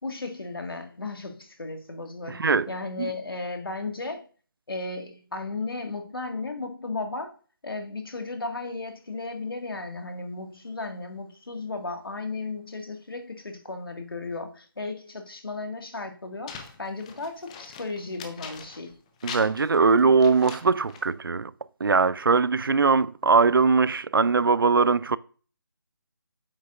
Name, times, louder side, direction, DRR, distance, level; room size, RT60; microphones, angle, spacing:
voice 1, 0.0-4.2 4.7-7.3 7.6-19.0, left 3 dB, 75° left, 1.8 m, -35 dB
sound 1, 16.5-18.9 19.2-21.1, left 6 dB, 15° left, 0.7 m, -42 dB
voice 2, 19.2-21.5 21.8-25.2, right 4 dB, 70° right, 0.4 m, -21 dB
8.4 x 7.3 x 2.5 m
figure-of-eight pair, 155°, 12 cm